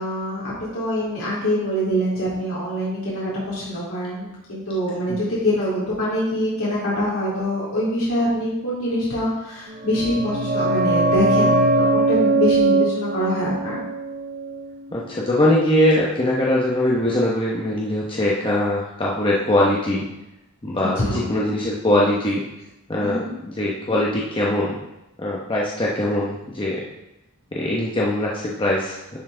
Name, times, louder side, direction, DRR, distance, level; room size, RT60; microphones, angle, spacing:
voice 1, 0.0-13.8 20.8-21.3 23.0-23.3, equal, 70° left, -8 dB, 2.6 m, -24 dB
sound 1, 9.8-15.2 15.4-15.5, right 2 dB, 45° right, 0.6 m, -21 dB
voice 2, 14.9-20.0 20.6-22.4 22.9-24.7 25.2-26.8 27.5-29.0, left 1 dB, 25° left, -4 dB, 0.9 m, -21 dB
10.5 x 4.5 x 3.8 m, 0.92 s
head